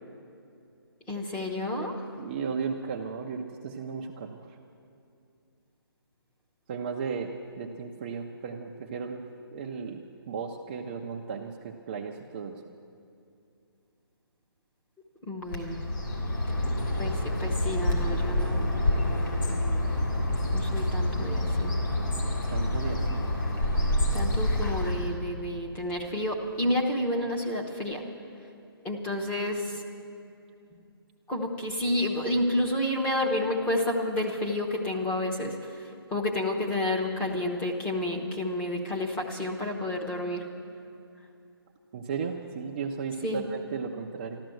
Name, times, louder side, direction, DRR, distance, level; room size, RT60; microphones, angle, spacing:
voice 1, 1.1-2.0 15.3-15.8 17.0-18.7 20.5-21.7 24.1-28.0 28.8-29.7 31.3-35.6 36.1-40.4 43.2-43.4, left 1 dB, 10° left, -1 dB, 1.0 m, -30 dB
voice 2, 2.2-4.4 6.7-9.2 9.5-12.6 22.5-23.2 41.9-44.4, right 5 dB, 20° right, 0 dB, 0.5 m, -35 dB
Bird, 15.5-25.2, left 1 dB, 55° left, 3.2 m, -27 dB
14.0 x 12.5 x 7.7 m, 2.6 s
hypercardioid pair, 165°, 13 cm